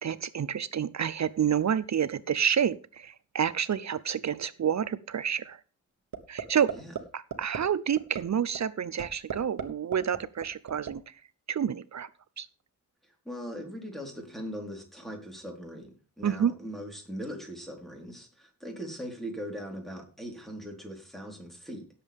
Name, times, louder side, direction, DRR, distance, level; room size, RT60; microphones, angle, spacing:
voice 1, 0.0-5.6 6.3-6.7 7.1-11.1 11.5-12.1 12.4-12.5 16.2-16.5, right 8 dB, 55° right, 17 dB, 0.6 m, -29 dB
sound 1, 6.1-6.4 6.7-7.0 7.3-7.6 8.0-8.2 8.5-8.6 9.0-9.6 9.9-10.9, right 7 dB, 90° right, 1.2 m, -34 dB
voice 2, 13.3-15.9 16.2-21.9, equal, ahead, 1 dB, 3.9 m, -40 dB
17.0 x 7.5 x 3.5 m, 0.35 s
wide cardioid pair, 100°, 33 cm